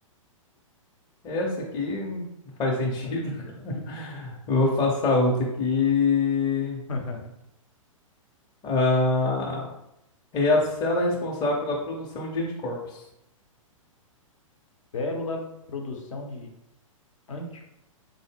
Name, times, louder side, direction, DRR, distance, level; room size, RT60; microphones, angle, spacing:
voice 1, 1.2-2.2 2.6-6.8 8.6-9.7 10.3-13.0, left 3 dB, 25° left, -4 dB, 0.6 m, -25 dB
voice 2, 6.9-7.2 14.9-15.4 15.7-16.5 17.3-17.6, left 2 dB, 65° left, 2 dB, 0.7 m, -32 dB
4.0 x 2.0 x 3.4 m, 0.81 s
figure-of-eight pair, 110°, 17 cm